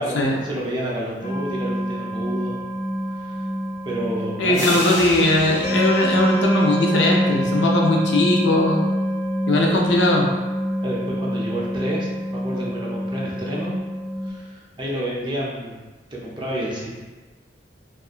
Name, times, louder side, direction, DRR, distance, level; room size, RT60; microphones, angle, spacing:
voice 1, 0.0-2.6 3.2-3.4 3.8-4.8 10.8-13.8 14.2-15.8 16.1-16.9, right 1 dB, 25° right, -4 dB, 0.5 m, -29 dB
sound 1, 1.2-14.3, equal, 40° left, 0.7 m, -25 dB
voice 2, 4.4-8.8 9.5-10.3, left 1 dB, 85° left, -1 dB, 0.5 m, -19 dB
sound 2, 4.5-7.2, equal, 5° left, 1.4 m, -32 dB
2.7 x 2.4 x 2.3 m, 1.3 s
head